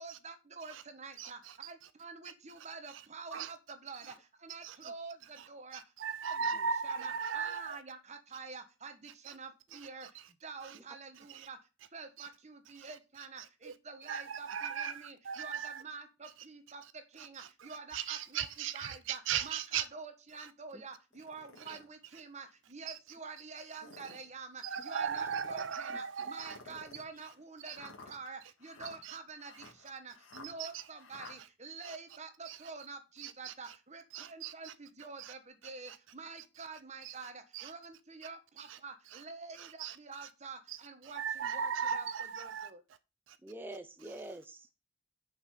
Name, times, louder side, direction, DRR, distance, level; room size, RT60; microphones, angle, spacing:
voice 1, 0.0-1.4 1.6-4.1 4.4-5.8 6.8-10.1 10.4-11.6 11.9-16.8 17.1-18.5 18.7-29.5 29.8-34.0 34.3-39.7 40.0-42.1 42.4-42.8, right 4 dB, 35° right, 1.4 m, -47 dB
voice 2, 1.2-1.7 2.9-3.1 3.3-3.5 3.9-4.1 4.6-4.9 5.4-7.8 9.2-9.3 9.7-10.2 10.6-10.8 11.3-11.5 12.2-12.3 12.8-13.8 14.0-15.8 17.2-19.9 20.4-20.5 21.6-21.8 22.9-23.0 24.0-24.2 24.6-26.6 27.7-27.8 29.0-29.2 30.4-30.9 31.4-31.5 31.8-32.0 32.4-32.6 33.2-33.8 34.1-34.7 35.2-35.3 35.9-36.0 37.0-37.2 37.5-37.7 38.6-38.8 39.1-39.2 39.6-40.3 40.7-42.7 43.3-43.4, right 7 dB, 70° right, 0.5 m, -39 dB
sound 1, 21.1-21.8 22.5-22.6 23.6-24.3 25.0-25.7 26.4-31.4, left 3 dB, 85° left, 2.2 m, -53 dB
voice 3, 25.9-26.3 26.7-26.8 43.4-44.7, right 1 dB, 10° right, 0.5 m, -47 dB
6.3 x 5.7 x 6.5 m
head